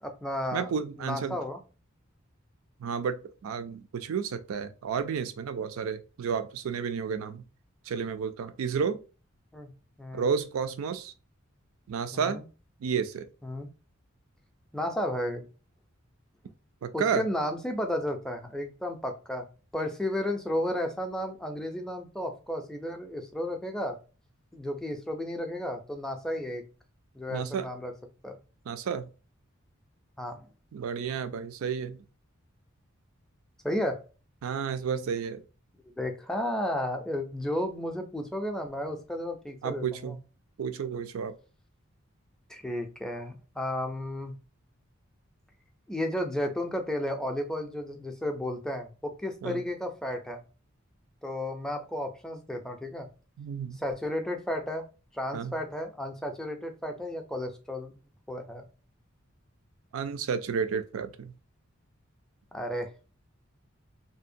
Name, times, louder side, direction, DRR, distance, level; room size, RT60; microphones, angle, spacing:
voice 1, 0.0-0.7 1.0-1.6 9.5-9.7 10.0-10.3 12.1-12.4 13.4-13.7 14.7-15.4 16.9-19.5 19.7-24.0 24.5-26.6 27.1-27.9 28.2-28.4 30.2-30.5 33.6-34.0 36.0-40.2 42.5-44.3 45.9-50.4 51.2-53.1 53.8-54.9 55.1-57.9 58.3-58.6 62.5-62.9, left 1 dB, 5° left, 0.4 m, -33 dB
voice 2, 0.5-1.4 2.8-7.4 7.9-9.0 10.1-11.1 11.9-12.4 12.8-13.3 16.8-17.3 27.3-27.7 28.7-29.1 30.7-32.0 34.4-35.4 39.6-40.2 40.6-41.4 49.4-49.6 53.4-53.8 55.3-55.5 59.9-61.3, right 6 dB, 85° right, 0.4 m, -31 dB
2.7 x 2.1 x 2.5 m
head